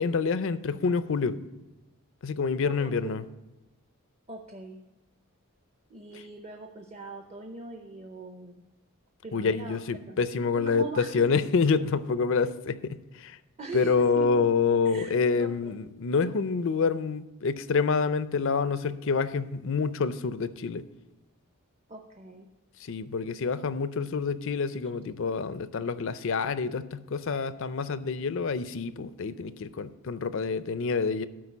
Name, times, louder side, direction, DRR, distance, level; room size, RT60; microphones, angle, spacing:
voice 1, 0.0-1.4 2.2-3.2 6.1-6.2 9.3-13.4 13.7-20.8 22.8-31.3, left 5 dB, 60° left, 14 dB, 0.5 m, -27 dB
voice 2, 2.6-3.2 4.3-4.8 5.9-8.6 9.2-10.2 10.5-11.2 13.6-14.4 14.8-15.7 21.9-22.5, right 3 dB, 30° right, 3 dB, 0.7 m, -41 dB
12.5 x 4.7 x 7.1 m, 1.0 s
head